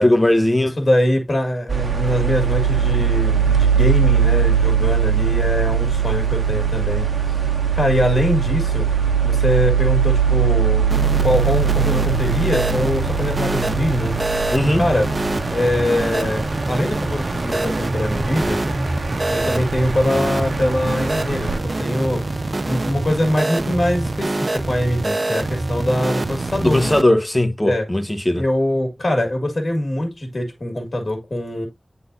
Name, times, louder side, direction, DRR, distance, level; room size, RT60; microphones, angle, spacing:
voice 1, 0.0-0.8 14.5-14.8 26.6-28.4, left 1 dB, 20° left, 1.1 m, -18 dB
voice 2, 0.6-7.4 7.7-8.9 9.2-10.9 11.2-14.2 14.7-15.1 15.5-18.6 19.3-22.4 22.7-26.8 27.7-27.9 28.4-31.7, left 1 dB, 60° left, 2.0 m, -23 dB
sound 1, 1.7-21.6, right 7 dB, 85° right, 1.2 m, -21 dB
sound 2, 10.9-27.0, right 2 dB, 55° right, 0.5 m, -25 dB
9.2 x 4.0 x 2.6 m
wide cardioid pair, 60°, 0 cm